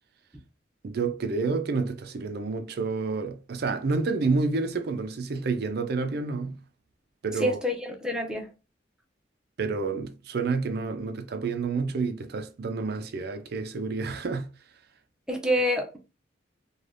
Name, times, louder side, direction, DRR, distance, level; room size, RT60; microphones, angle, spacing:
voice 1, 0.8-6.6 7.2-7.6 9.6-14.5, right 4 dB, 55° right, 0.4 m, -29 dB
voice 2, 7.4-8.5 15.3-16.0, equal, 5° right, 0.6 m, -27 dB
3.2 x 2.2 x 2.5 m
head